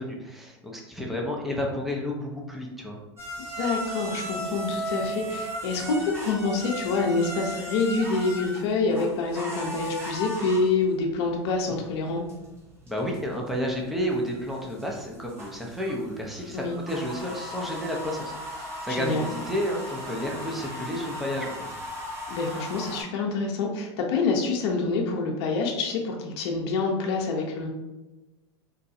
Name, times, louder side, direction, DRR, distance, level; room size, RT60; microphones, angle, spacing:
voice 1, 0.0-3.0 12.9-21.8, equal, ahead, -1 dB, 0.6 m, -31 dB
sound 1, 3.2-23.0, equal, 15° right, 1.1 m, -37 dB
voice 2, 3.6-12.2 16.5-16.8 18.9-19.3 22.3-27.7, left 3 dB, 65° left, 1 dB, 0.6 m, -27 dB
3.9 x 2.2 x 2.7 m, 1.1 s
hypercardioid pair, 100°, 14 cm